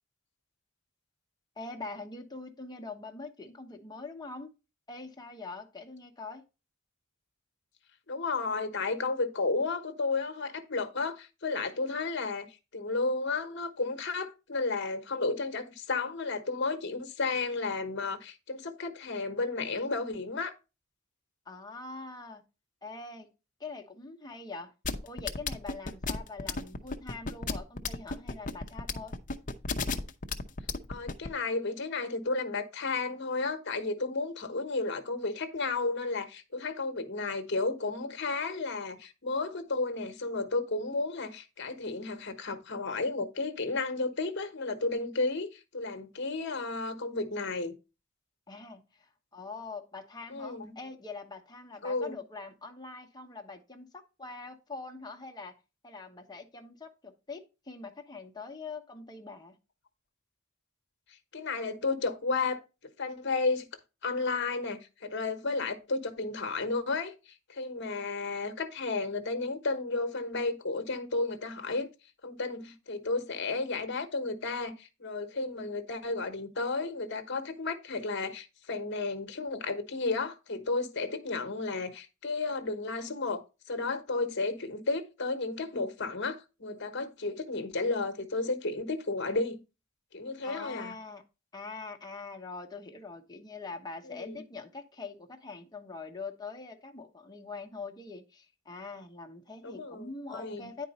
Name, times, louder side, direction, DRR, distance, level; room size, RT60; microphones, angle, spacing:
voice 1, 1.6-4.5 4.9-6.4 21.5-22.4 22.8-23.3 23.6-24.7 25.0-29.1 48.5-55.6 55.8-59.5 86.9-87.2 90.4-91.2 91.5-100.9, left 3 dB, 20° left, 1.1 m, -43 dB
voice 2, 8.1-12.5 12.7-20.5 30.9-47.8 50.3-50.7 51.8-52.1 61.1-62.6 63.0-63.7 64.0-71.9 72.2-89.6 90.1-91.0 94.1-94.4 99.6-100.7, left 3 dB, 60° left, 1.1 m, -33 dB
sound 1, 24.8-31.3, left 4 dB, 40° left, 0.7 m, -32 dB
9.8 x 4.6 x 4.2 m
head